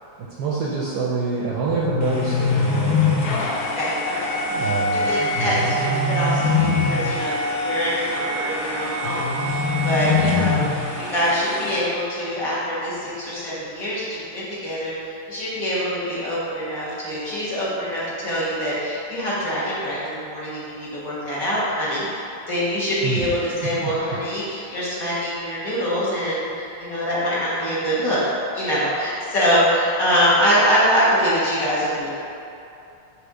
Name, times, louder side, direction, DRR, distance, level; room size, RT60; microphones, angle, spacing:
voice 1, 0.4-3.3 4.5-5.7 23.0-23.3 23.6-23.9, right 4 dB, 70° right, -5 dB, 1.0 m, -26 dB
sound 1, 1.7-3.7 5.3-7.2 9.0-11.0, left 5 dB, 85° left, 0.7 m, -23 dB
sound 2, 2.0-11.8, equal, 65° left, 1.0 m, -27 dB
voice 2, 3.7-7.3 7.6-22.2 22.5-28.2 28.5-32.1, equal, 45° left, -9 dB, 1.6 m, -24 dB
5.8 x 3.4 x 4.8 m, 2.7 s
omnidirectional pair, 2.2 m